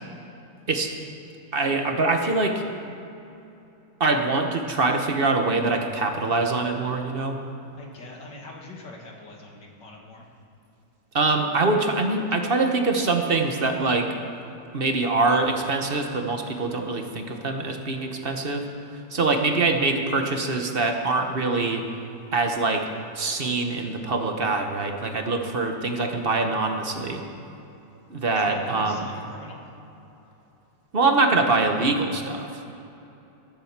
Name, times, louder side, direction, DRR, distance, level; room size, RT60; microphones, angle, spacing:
voice 1, 1.5-2.6 4.0-7.4 11.1-14.1 14.7-18.7 19.1-21.8 22.3-22.9 23.1-27.2 28.1-29.0 30.9-32.6, right 3 dB, 35° right, 4 dB, 1.0 m, -24 dB
voice 2, 7.8-10.3 28.3-29.6, left 2 dB, 65° left, -1 dB, 2.8 m, -43 dB
20.5 x 7.6 x 7.3 m, 2.9 s
omnidirectional pair, 2.1 m